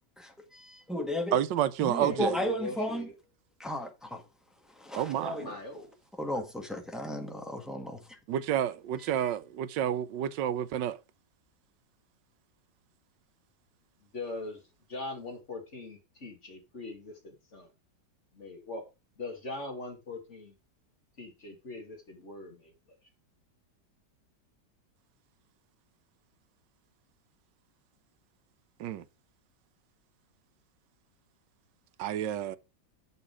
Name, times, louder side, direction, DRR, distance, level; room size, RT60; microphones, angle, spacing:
voice 1, 0.2-1.4 1.8-3.1 3.6-4.2 4.7-5.6 6.2-8.2 9.1-9.3, left 1 dB, ahead, 1.4 m, -35 dB
voice 2, 1.3-2.4 4.9-5.5 8.3-11.0 28.8-29.0 32.0-32.6, right 10 dB, 85° right, 1.3 m, -30 dB
voice 3, 1.9-3.1 5.4-5.9 14.1-14.6 14.9-17.7 18.3-18.9 19.2-20.6 21.2-22.7, left 2 dB, 40° left, 2.6 m, -41 dB
7.9 x 6.8 x 4.8 m
omnidirectional pair, 1.9 m